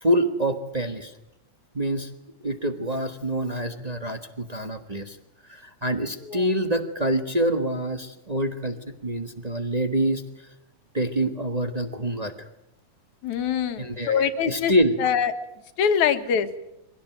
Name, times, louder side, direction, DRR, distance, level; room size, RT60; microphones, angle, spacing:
voice 1, 0.0-1.1 1.7-2.1 2.4-5.2 5.5-10.5 10.9-12.5 13.8-14.9, right 1 dB, 40° right, 5 dB, 0.5 m, -26 dB
voice 2, 13.2-14.7 15.0-15.3 15.8-16.5, left 7 dB, 80° left, 8 dB, 2.9 m, -24 dB
24.5 x 17.5 x 9.1 m, 0.91 s
omnidirectional pair, 3.4 m